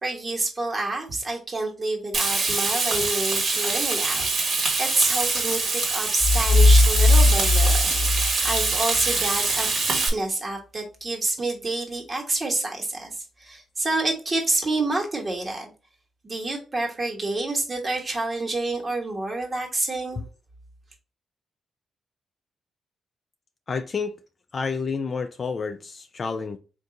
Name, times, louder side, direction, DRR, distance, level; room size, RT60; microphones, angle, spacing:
voice 1, 0.0-13.1 13.4-15.7 16.2-20.2, right 2 dB, 35° right, 1.3 m, -28 dB
Frying (food), 2.1-10.1, right 3 dB, 60° right, 1.3 m, -24 dB
sound 1, 6.2-9.1, left 2 dB, 30° left, 0.9 m, -18 dB
voice 2, 23.7-24.1 24.5-26.6, left 5 dB, 50° left, 0.3 m, -29 dB
3.7 x 2.6 x 3.8 m
cardioid pair, 75°, 0 cm